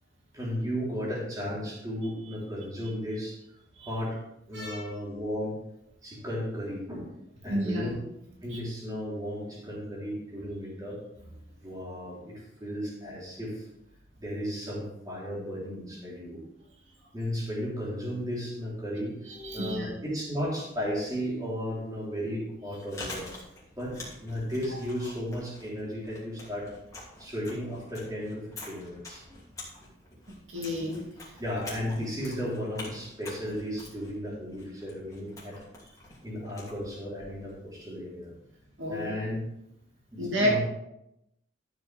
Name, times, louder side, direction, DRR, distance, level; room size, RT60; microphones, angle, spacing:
voice 1, 0.3-3.4 3.8-4.2 4.5-5.6 6.0-7.1 7.4-8.0 8.4-11.0 11.6-12.3 12.6-13.6 14.2-16.4 17.1-19.1 19.5-23.3 23.8-26.7 27.2-29.2 31.4-35.6 36.2-38.3 38.9-39.4 40.1-40.6, equal, 20° right, -5 dB, 3.6 m, -34 dB
voice 2, 4.5-4.8 7.5-7.9 8.5-8.6 19.2-19.9 29.3-29.4 30.3-31.0 38.8-39.1 40.2-40.6, equal, 65° right, -2 dB, 2.3 m, -30 dB
Chewing mastication, 22.6-37.6, left 2 dB, 15° left, 2.8 m, -46 dB
13.0 x 7.8 x 3.5 m, 0.83 s
head